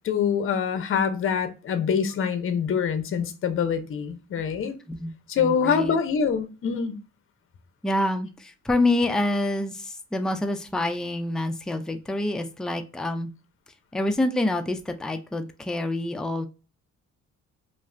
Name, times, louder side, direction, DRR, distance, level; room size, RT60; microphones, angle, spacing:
voice 1, 0.0-4.8 5.3-7.0, left 7 dB, 45° left, 0.6 m, -25 dB
voice 2, 5.4-5.9 7.8-13.3 13.9-16.5, left 1 dB, ahead, 0.3 m, -27 dB
2.5 x 2.3 x 3.1 m
cardioid pair, 90°, 30 cm